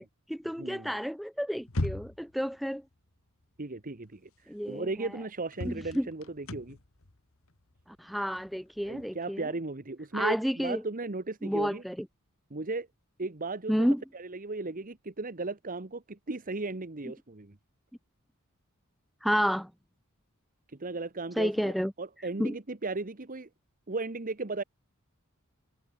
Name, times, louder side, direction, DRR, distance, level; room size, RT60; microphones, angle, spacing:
voice 1, 0.0-2.8 4.5-4.9 5.6-6.1 8.0-9.4 10.1-10.8 11.4-12.0 13.7-14.0 19.2-19.7 21.4-21.9 22.4-22.5, equal, ahead, 0.8 m, -30 dB
voice 2, 0.6-0.9 3.6-6.8 8.8-11.8 12.5-12.9 13.2-13.9 14.1-17.6 20.8-23.5 23.9-24.6, right 3 dB, 40° right, 1.3 m, -36 dB
sound 1, 1.6-2.4 4.2-4.3 4.7-4.8 5.5-9.1, left 1 dB, 70° left, 1.9 m, -37 dB
head